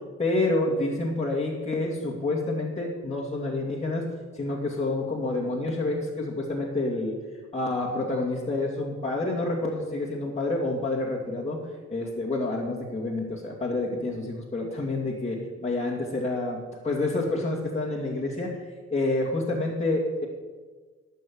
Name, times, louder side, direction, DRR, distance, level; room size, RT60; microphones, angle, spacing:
voice 1, 0.2-4.1 4.3-7.2 7.5-11.6 11.9-16.6 16.8-20.3, left 2 dB, 20° left, -4 dB, 2.4 m, -28 dB
12.0 x 5.7 x 8.6 m, 1.4 s
cardioid pair, 65°, 30 cm